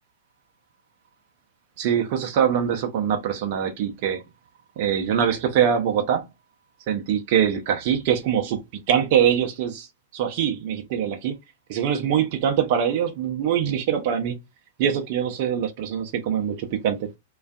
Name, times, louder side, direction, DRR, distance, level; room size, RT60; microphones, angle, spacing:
voice 1, 1.8-4.2 4.8-6.2 6.9-8.6 8.9-9.9 10.1-11.4 11.7-14.4 14.8-17.1, right 8 dB, 45° right, 0.5 m, -23 dB
2.4 x 2.3 x 2.3 m
figure-of-eight pair, 100°, 0 cm